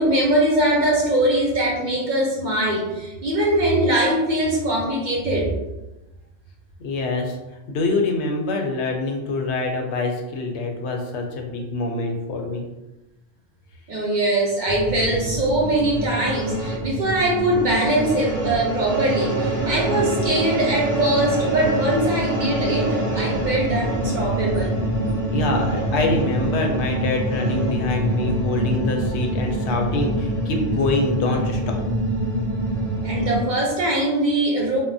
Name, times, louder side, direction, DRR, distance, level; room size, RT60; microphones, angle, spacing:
voice 1, 0.0-5.5 13.9-24.7 33.0-34.8, right 1 dB, 50° right, -3 dB, 0.7 m, -22 dB
voice 2, 6.8-7.4 7.7-12.6 25.3-31.8, left 2 dB, 80° left, 3 dB, 0.8 m, -25 dB
sound 1, 14.7-33.4, right 1 dB, ahead, 0.7 m, -25 dB
3.5 x 2.0 x 2.6 m, 1.0 s
omnidirectional pair, 1.1 m